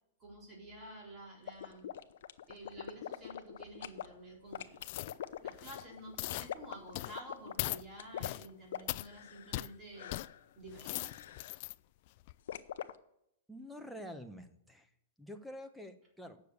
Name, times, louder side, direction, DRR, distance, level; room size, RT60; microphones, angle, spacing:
voice 1, 0.2-1.9 2.5-4.8 5.4-10.2 10.6-11.2, right 1 dB, 20° right, -2 dB, 4.0 m, -50 dB
sound 1, 1.5-4.1 4.5-9.7 10.0-10.4 11.0-11.5 12.5-12.9, left 10 dB, 70° left, 0.7 m, -44 dB
sound 2, 4.8-5.2 5.5-5.8 6.2-6.5 6.9-7.2 7.6-7.8 8.2-8.5 8.9-9.1 9.5-9.7 10.1-10.3 10.7-11.7 12.2-12.3, left 19 dB, 45° left, 0.3 m, -39 dB
voice 2, 13.5-16.4, equal, ahead, 8 dB, 0.9 m, -48 dB
9.1 x 6.8 x 8.1 m, 0.79 s
hypercardioid pair, 150°, 0 cm